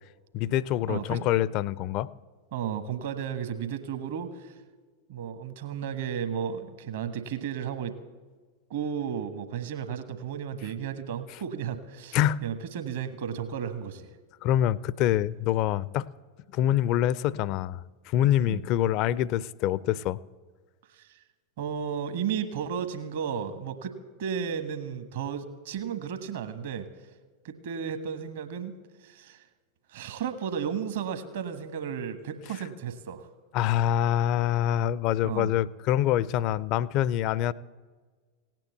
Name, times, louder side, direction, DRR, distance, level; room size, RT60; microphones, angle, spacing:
voice 1, 0.3-2.1 12.1-12.4 14.4-16.1 16.5-17.8 18.1-20.2 33.5-37.5, left 12 dB, 40° left, 21 dB, 0.4 m, -25 dB
voice 2, 0.9-1.2 2.5-4.6 5.1-7.9 8.7-14.1 18.4-18.6 20.9-21.2 21.6-26.9 27.4-28.7 29.0-29.4 29.9-33.3 35.2-35.5, right 7 dB, 55° right, 9 dB, 1.2 m, -34 dB
17.0 x 9.1 x 8.0 m, 1.4 s
figure-of-eight pair, 90°, 0 cm